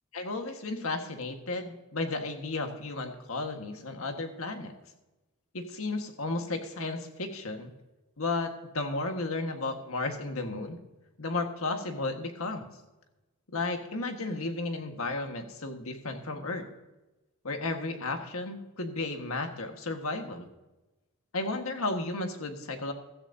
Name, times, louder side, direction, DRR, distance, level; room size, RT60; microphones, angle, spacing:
voice 1, 0.1-4.7 5.5-7.7 8.2-10.8 11.2-12.7 13.5-16.7 17.4-20.5 21.3-22.9, left 2 dB, 70° left, 5 dB, 1.6 m, -33 dB
15.5 x 13.0 x 2.7 m, 1.1 s
head